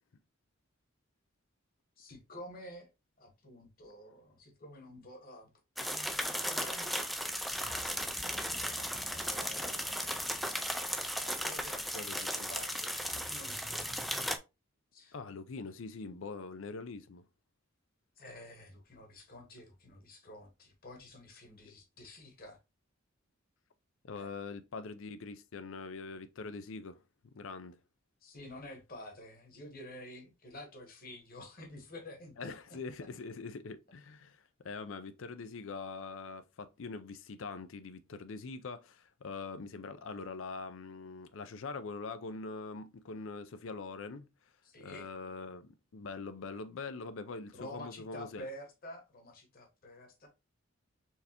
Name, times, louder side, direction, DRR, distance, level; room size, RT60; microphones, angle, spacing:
voice 1, 2.0-2.9 3.2-7.1 8.4-10.2 11.2-14.1 14.9-15.1 18.2-22.6 24.1-24.3 28.2-32.8 44.6-45.1 47.5-50.3, left 1 dB, 45° left, 1.3 m, -50 dB
sound 1, 5.8-14.4, equal, ahead, 0.3 m, -36 dB
voice 2, 11.9-12.5 15.1-17.2 21.7-21.8 24.0-27.0 27.3-27.8 32.4-44.3 44.8-48.5, left 4 dB, 65° left, 0.5 m, -43 dB
4.5 x 3.4 x 2.9 m
head